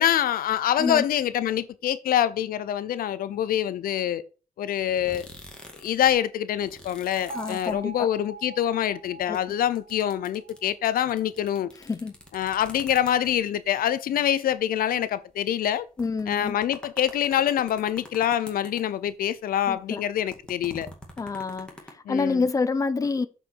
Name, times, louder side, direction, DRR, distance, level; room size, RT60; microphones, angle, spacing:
voice 1, 0.0-4.2 4.6-5.3 5.8-11.7 12.3-15.9 16.3-20.9 22.1-22.5, left 10 dB, 85° left, 0.7 m, -25 dB
sound 1, 4.9-6.1 6.4-8.3 8.6-13.6 14.2-14.3 14.5-14.6 15.3-15.4 15.8-19.2 19.5-21.9, left 1 dB, 5° left, 2.0 m, -45 dB
voice 2, 7.3-8.1 9.3-9.4 11.9-12.1 16.0-16.6 19.7-20.0 21.2-23.3, left 4 dB, 25° left, 0.7 m, -27 dB
Bell, 7.3-11.4, right 2 dB, 40° right, 2.1 m, -43 dB
7.6 x 4.9 x 5.9 m
wide cardioid pair, 145°, 15 cm